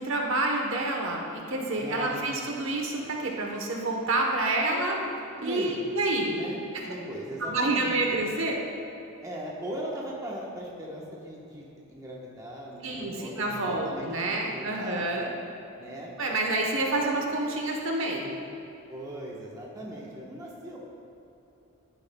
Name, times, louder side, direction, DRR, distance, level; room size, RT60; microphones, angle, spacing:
voice 1, 0.0-5.0 5.4-6.4 6.7-6.8 7.4-8.6 12.8-15.3 16.2-18.3, right 2 dB, 65° right, 0 dB, 1.0 m, -28 dB
voice 2, 1.7-2.3 4.7-5.0 5.4-5.8 6.3-8.2 9.2-15.3 15.8-16.3 16.8-16.9 18.9-20.8, equal, 15° right, -4 dB, 1.1 m, -39 dB
11.0 x 9.5 x 2.3 m, 2.9 s
head